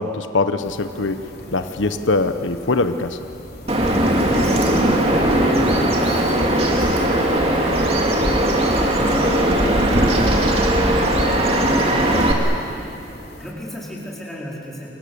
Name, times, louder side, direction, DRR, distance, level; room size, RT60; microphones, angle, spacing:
voice 1, 0.0-3.3, left 3 dB, 85° left, 9 dB, 1.0 m, -22 dB
sound 1, 0.6-13.5, equal, 55° left, 3.9 m, -39 dB
Bird vocalization bird call bird song, 3.7-12.3, right 1 dB, 30° right, 2.5 m, -18 dB
voice 2, 4.4-5.9 6.6-9.5 10.6-12.9 13.4-14.9, equal, ahead, -5 dB, 4.6 m, -34 dB
29.0 x 24.0 x 7.0 m, 2.6 s
head